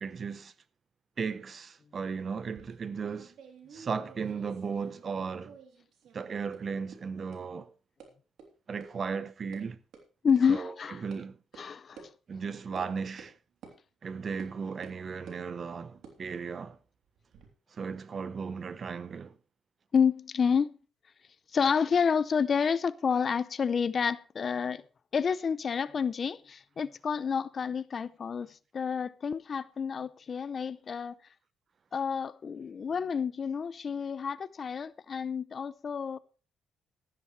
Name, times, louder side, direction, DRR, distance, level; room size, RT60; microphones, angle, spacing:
voice 1, 0.0-0.5 1.2-3.3 3.7-5.6 6.1-7.7 8.7-9.8 10.5-11.4 12.3-13.3 14.0-16.8 17.7-19.4, right 5 dB, 45° right, 0.9 m, -36 dB
sound 1, 2.4-5.2 5.4-6.2 6.5-6.6 6.9-7.0 7.3-7.4 8.0-8.1 8.4-8.5 8.8-8.9 9.2-9.6 9.9-10.0 10.4-10.5 11.1-11.2 11.5-11.6 12.0-12.1 12.8-12.9 13.2-13.3 13.6-13.8 14.4-14.5 14.8-15.4 15.9-17.5, right 6 dB, 75° right, 3.2 m, -51 dB
voice 2, 10.2-11.0 11.6-12.0 19.9-20.8 21.5-24.8 25.1-28.5 28.7-31.1 31.9-36.2, left 6 dB, 45° left, 0.6 m, -29 dB
14.0 x 12.5 x 3.2 m
cardioid pair, 90°, 0 cm